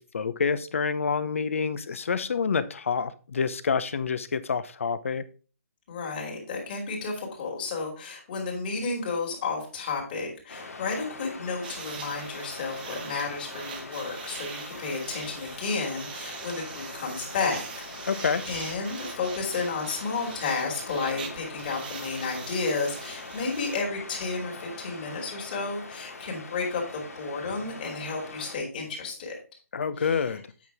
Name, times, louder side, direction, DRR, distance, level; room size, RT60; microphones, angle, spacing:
voice 1, 0.0-5.2 18.1-18.4 29.7-30.4, left 5 dB, 60° left, 14 dB, 0.7 m, -27 dB
voice 2, 5.9-17.6 18.1-29.3 30.0-30.3, left 4 dB, 35° left, -1 dB, 2.7 m, -32 dB
Waves surf, 10.5-28.6, left 3 dB, 80° left, 2.2 m, -42 dB
sound 1, 11.6-23.8, right 6 dB, 35° right, 1.1 m, -42 dB
8.4 x 6.1 x 3.5 m, 0.36 s
hypercardioid pair, 155°, 8 cm